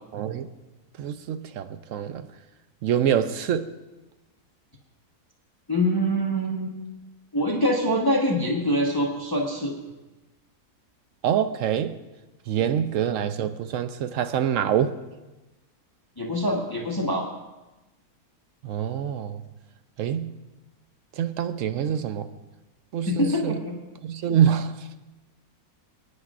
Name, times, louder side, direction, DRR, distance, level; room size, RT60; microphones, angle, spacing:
voice 1, 0.1-0.5 1.0-2.3 2.8-3.7 11.2-12.0 12.5-15.0 18.6-19.4 20.0-20.3 21.2-22.3 22.9-23.6 24.0-24.9, right 9 dB, 65° right, 10 dB, 0.9 m, -25 dB
voice 2, 5.7-6.7 7.3-9.7 12.6-12.7 16.2-17.3 23.1-23.8, equal, 15° left, -1 dB, 1.0 m, -24 dB
24.5 x 9.5 x 2.5 m, 1.1 s
omnidirectional pair, 1.6 m